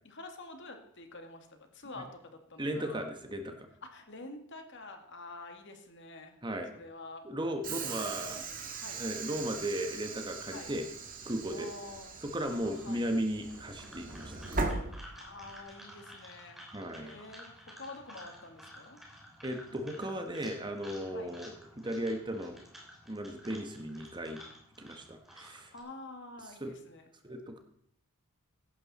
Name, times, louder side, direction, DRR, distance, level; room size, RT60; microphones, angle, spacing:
voice 1, 0.0-3.1 3.8-6.4 6.7-7.2 7.9-9.0 10.5-10.7 11.5-12.2 12.6-13.1 14.9-16.6 17.0-19.0 21.1-21.3 25.3-25.4 25.7-27.1, left 2 dB, 55° left, 5 dB, 2.1 m, -48 dB
voice 2, 2.6-3.7 6.4-6.7 7.2-8.4 9.0-10.8 11.3-11.7 12.3-14.6 16.7-17.1 19.4-22.6 23.1-24.4 24.8-25.7 26.6-26.7 27.2-27.6, right 1 dB, 20° right, 6 dB, 1.3 m, -36 dB
Train / Sliding door, 7.6-15.6, right 3 dB, 40° right, 1.9 m, -39 dB
sound 1, 13.4-25.8, equal, ahead, 3.0 m, -52 dB
16.0 x 11.0 x 4.2 m, 0.67 s
head